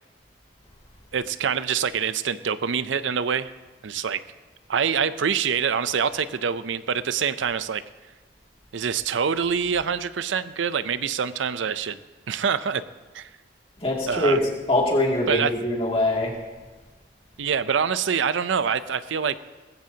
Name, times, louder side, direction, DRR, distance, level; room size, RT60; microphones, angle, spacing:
voice 1, 1.1-3.5 3.8-4.2 4.7-7.8 8.7-12.0 12.3-12.8 13.1-13.3 14.1-14.4 15.3-15.5 17.4-19.4, right 7 dB, 80° right, 14 dB, 0.5 m, -25 dB
voice 2, 13.8-14.4 14.7-16.3, left 1 dB, 30° left, -2 dB, 2.4 m, -23 dB
19.5 x 15.0 x 2.8 m, 1.2 s
head